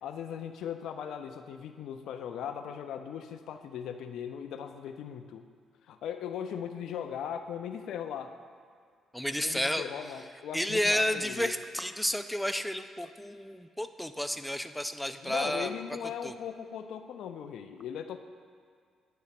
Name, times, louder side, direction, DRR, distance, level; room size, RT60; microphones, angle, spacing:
voice 1, 0.0-5.5 5.9-8.3 9.4-11.6 15.2-18.2, left 8 dB, 80° left, 7 dB, 0.4 m, -38 dB
voice 2, 9.1-9.9 10.5-15.7 16.2-16.3, equal, ahead, 8 dB, 0.3 m, -31 dB
9.2 x 3.2 x 5.8 m, 2.1 s
cardioid pair, 90°, 0 cm